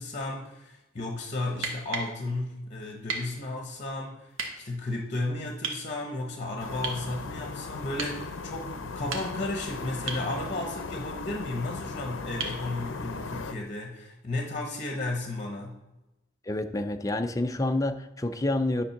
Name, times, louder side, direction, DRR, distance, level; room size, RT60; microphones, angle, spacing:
voice 1, 0.0-4.3 4.6-15.8, left 2 dB, 40° left, 2 dB, 1.0 m, -34 dB
sound 1, 1.5-2.1 3.1-3.3 4.3-4.5 5.6-5.8 6.8-7.1 8.0-8.2 8.9-9.5 10.1-10.3 12.4-12.6 14.5-14.6, right 4 dB, 90° right, 1.2 m, -34 dB
sound 2, 6.6-13.5, left 4 dB, 75° left, 0.6 m, -38 dB
voice 2, 16.5-18.8, left 2 dB, 15° left, 7 dB, 0.5 m, -28 dB
9.9 x 3.7 x 5.8 m, 1.0 s
head